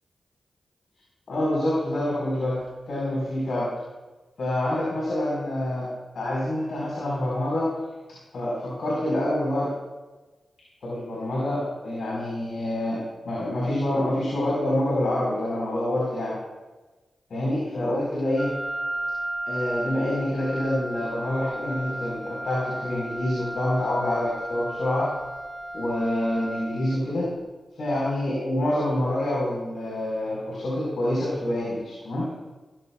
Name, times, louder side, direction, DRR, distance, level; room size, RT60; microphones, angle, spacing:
voice 1, 1.3-2.6 2.9-3.7 4.4-7.7 8.3-9.7 10.8-13.0 13.2-16.4 17.3-18.5 19.5-25.1 25.7-27.3 27.8-32.3, left 1 dB, 75° left, -6 dB, 5.1 m, -26 dB
Wind instrument woodwind instrument, 18.4-27.1, right 1 dB, 15° right, 3.9 m, -34 dB
18.0 x 15.0 x 2.5 m, 1.2 s
cardioid pair, 55°, 0 cm